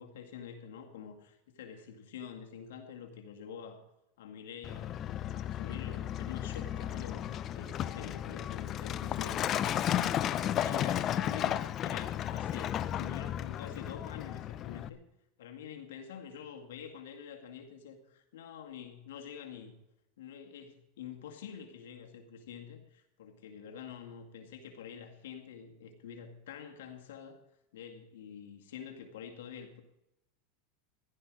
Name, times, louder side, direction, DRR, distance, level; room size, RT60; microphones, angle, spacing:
voice 1, 0.0-3.8 4.2-5.0 5.3-9.8 10.2-15.0 15.4-19.8 20.2-27.4 27.7-29.8, left 7 dB, 80° left, 3 dB, 2.1 m, -47 dB
Truck, 4.6-14.9, left 11 dB, 35° left, 0.6 m, -34 dB
15.5 x 11.5 x 4.9 m, 0.90 s
supercardioid pair, 120°, 0 cm